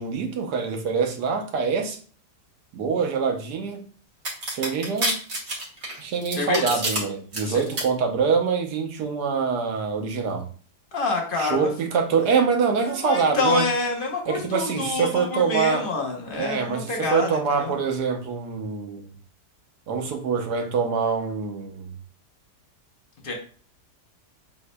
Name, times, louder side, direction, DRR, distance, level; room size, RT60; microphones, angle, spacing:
voice 1, 0.0-2.0 2.7-3.9 4.5-5.1 6.0-10.5 11.4-13.7 14.3-15.9 16.4-19.1 19.9-22.0, right 5 dB, 75° right, 4 dB, 1.3 m, -25 dB
sound 1, 4.2-7.0 7.3-7.8, right 1 dB, 50° right, 1.9 m, -27 dB
voice 2, 6.3-6.8 7.4-7.6 10.9-11.7 12.8-17.8 23.2-23.3, left 3 dB, 40° left, 1 dB, 0.9 m, -27 dB
7.5 x 2.7 x 2.2 m, 0.43 s
omnidirectional pair, 1.8 m